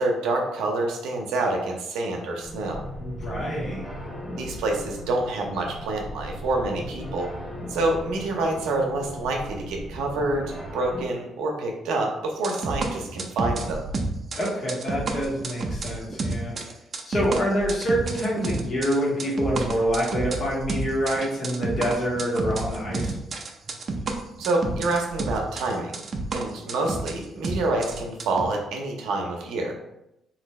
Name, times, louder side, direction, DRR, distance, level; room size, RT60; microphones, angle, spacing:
voice 1, 0.0-2.8 4.3-7.3 7.7-13.8 24.4-26.0 26.3-29.8, right 2 dB, 90° right, 1 dB, 0.7 m, -27 dB
sound 1, 2.4-11.1, equal, 15° left, 0.7 m, -37 dB
voice 2, 3.0-3.8 14.4-16.5 17.1-23.2, equal, 55° left, -4 dB, 1.4 m, -26 dB
sound 2, 12.4-28.5, right 3 dB, 45° right, 0.5 m, -30 dB
3.2 x 2.6 x 3.1 m, 0.85 s
cardioid pair, 90°, 0 cm